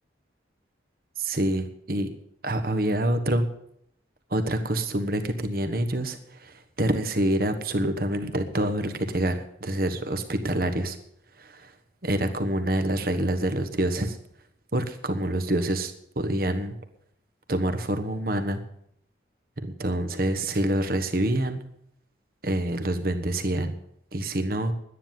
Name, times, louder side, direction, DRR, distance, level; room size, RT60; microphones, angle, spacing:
voice 1, 1.2-2.1 2.4-3.5 4.3-11.0 11.4-11.7 12.0-14.2 14.7-16.7 17.5-18.6 19.6-21.6 22.4-23.7 24.1-24.7, right 1 dB, 50° right, 7 dB, 1.3 m, -26 dB
11.5 x 10.0 x 7.5 m, 0.72 s
head